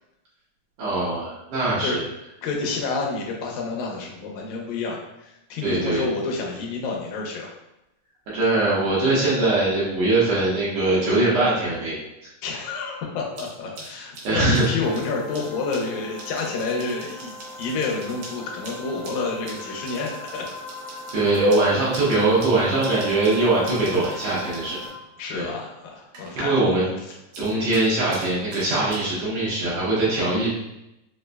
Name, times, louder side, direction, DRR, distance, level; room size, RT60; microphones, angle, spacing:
voice 1, 0.8-2.0 5.6-6.0 8.3-12.0 14.2-14.7 21.1-24.9 25.3-25.5 26.3-26.9 27.4-30.5, right 2 dB, 70° right, -8 dB, 1.8 m, -22 dB
voice 2, 2.4-7.5 12.4-20.5 20.9-21.0 25.2-26.8, left 3 dB, 85° left, -1 dB, 2.0 m, -29 dB
sound 1, 13.3-26.7 27.0-29.0, right 2 dB, 85° right, 2.3 m, -43 dB
sound 2, 14.8-24.9, left 1 dB, 50° left, 0.9 m, -40 dB
5.0 x 2.1 x 2.2 m, 0.88 s
omnidirectional pair, 3.4 m